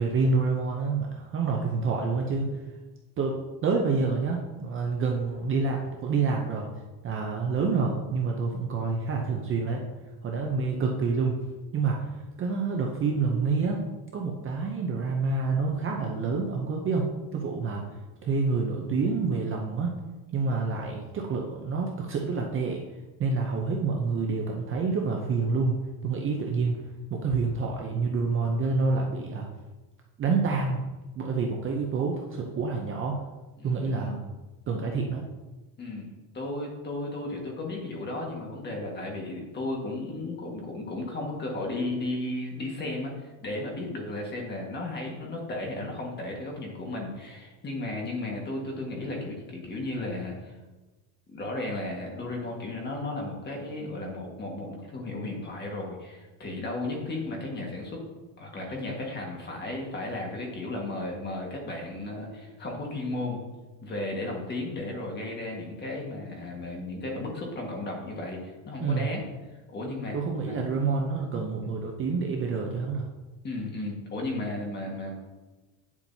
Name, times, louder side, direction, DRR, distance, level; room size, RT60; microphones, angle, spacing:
voice 1, 0.0-2.6 3.2-6.7 7.0-9.8 10.2-11.4 11.7-13.8 14.1-17.8 18.2-20.0 20.3-22.8 23.2-26.8 27.1-29.5 30.2-30.8 31.2-33.2 33.6-34.2 34.7-35.2 68.8-69.1 70.1-73.1, right 4 dB, 30° right, 1 dB, 0.6 m, -28 dB
voice 2, 33.6-34.2 35.8-50.5 51.3-58.0 58.4-63.4 63.8-69.2 69.7-70.1 70.4-70.6 73.4-75.1, left 2 dB, 25° left, 0 dB, 1.6 m, -34 dB
9.5 x 7.2 x 2.7 m, 1.2 s
cardioid pair, 160°, 44 cm